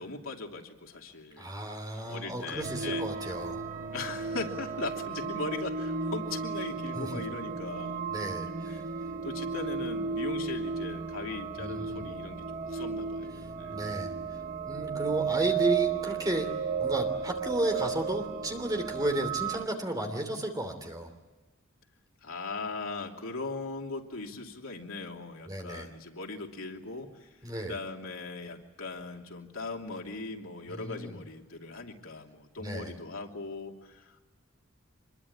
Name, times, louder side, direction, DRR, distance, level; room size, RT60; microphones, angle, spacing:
voice 1, 0.0-1.5 1.9-3.1 3.9-8.0 8.7-8.8 9.2-13.3 13.6-13.7 22.2-27.3 27.6-34.2, left 3 dB, 85° left, 1 dB, 2.9 m, -39 dB
voice 2, 1.4-3.6 6.9-7.1 8.1-8.8 11.6-12.0 13.7-14.1 14.7-21.1 25.5-25.9 27.4-27.8 30.7-31.1 32.6-32.9, right 1 dB, 20° right, 5 dB, 3.0 m, -33 dB
sound 1, 2.6-19.6, right 6 dB, 40° right, 0.9 m, -34 dB
25.5 x 22.0 x 8.7 m, 1.2 s
head